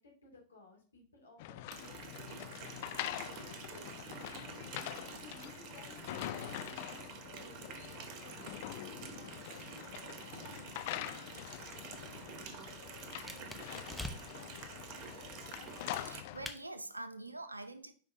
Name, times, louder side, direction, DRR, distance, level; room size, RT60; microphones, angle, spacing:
voice 1, 0.0-3.9 4.5-10.3, left 3 dB, 75° left, 2.6 m, -59 dB
sound 1, 1.4-16.5, left 14 dB, 50° left, 0.5 m, -45 dB
Water tap faucet, 1.7-16.2, right 7 dB, 40° right, 0.9 m, -49 dB
sound 2, 11.8-14.5 15.3-16.6, left 1 dB, ahead, 0.9 m, -48 dB
voice 2, 16.0-17.9, right 2 dB, 85° right, 0.7 m, -45 dB
10.0 x 5.2 x 2.8 m
figure-of-eight pair, 90°, 0 cm